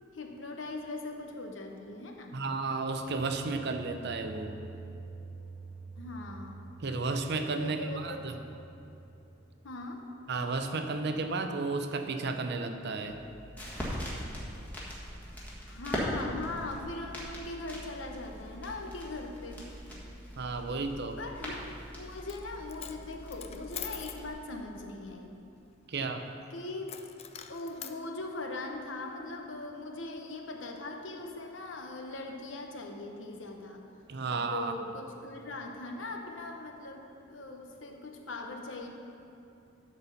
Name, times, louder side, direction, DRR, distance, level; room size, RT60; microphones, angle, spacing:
voice 1, 0.1-2.4 6.0-6.6 7.6-8.2 9.6-10.0 15.7-19.7 21.2-25.4 26.5-26.9 27.5-33.8 34.3-38.9, left 2 dB, 70° left, 2 dB, 1.0 m, -40 dB
voice 2, 2.3-4.5 6.8-8.3 10.3-13.2 20.4-21.2 25.9-26.2 34.1-34.7, right 3 dB, 60° right, 6 dB, 0.6 m, -33 dB
sound 1, 2.9-11.7, right 3 dB, 10° right, 1.7 m, -49 dB
sound 2, 13.1-24.3, equal, 10° left, 1.6 m, -41 dB
Coin (dropping), 22.1-22.4 22.7-24.2 26.9-28.0, left 9 dB, 30° left, 0.4 m, -43 dB
11.0 x 4.3 x 6.8 m, 2.7 s
head